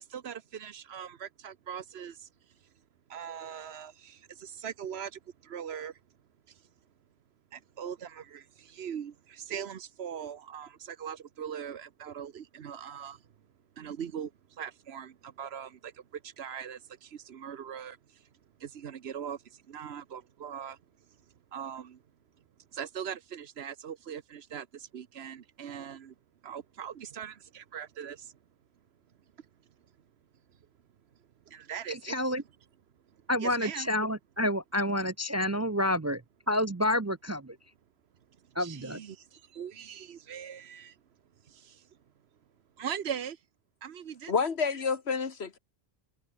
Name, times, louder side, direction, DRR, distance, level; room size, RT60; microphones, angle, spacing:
voice 1, 0.0-2.3 3.1-6.0 6.5-6.6 7.5-13.2 13.8-18.3 18.6-20.8 21.5-22.0 22.7-26.1 26.4-28.3 29.4-29.5 31.5-32.1 33.4-33.9 38.5-41.0 41.4-41.9 42.8-43.4 43.8-44.3, right 8 dB, 80° right, 1.2 m, -41 dB
voice 2, 31.9-32.4 33.3-36.2 36.5-37.6 38.6-39.0, left 1 dB, 25° right, 0.3 m, -29 dB
voice 3, 44.3-45.6, left 5 dB, 85° left, 1.8 m, -29 dB
omnidirectional pair, 1.1 m